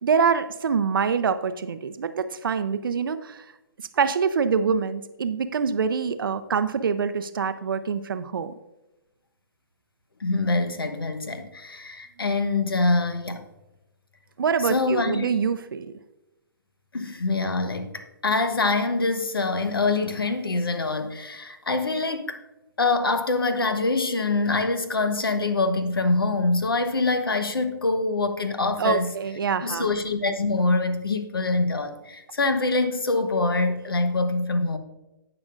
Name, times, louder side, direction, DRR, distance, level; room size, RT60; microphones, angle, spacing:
voice 1, 0.0-3.4 3.9-8.5 14.4-15.9 28.8-29.9, right 6 dB, 70° right, 0.6 m, -25 dB
voice 2, 10.2-13.4 14.6-15.3 16.9-22.4 22.8-29.1 29.6-34.8, left 3 dB, 80° left, 1.1 m, -25 dB
16.5 x 6.0 x 2.5 m
figure-of-eight pair, 130°, 12 cm